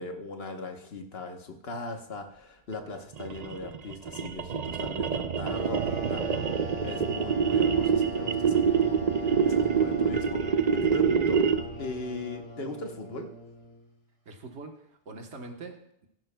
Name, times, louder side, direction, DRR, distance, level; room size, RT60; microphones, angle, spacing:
voice 1, 0.0-11.4 11.8-13.3, left 2 dB, 65° left, 4 dB, 1.3 m, -39 dB
sound 1, 3.1-11.8, right 6 dB, 45° right, 0.6 m, -26 dB
sound 2, 5.5-13.9, equal, 30° left, 4.4 m, -40 dB
voice 2, 14.2-16.1, right 3 dB, 85° right, 4 dB, 1.5 m, -44 dB
16.0 x 10.5 x 2.2 m, 0.74 s
omnidirectional pair, 1.1 m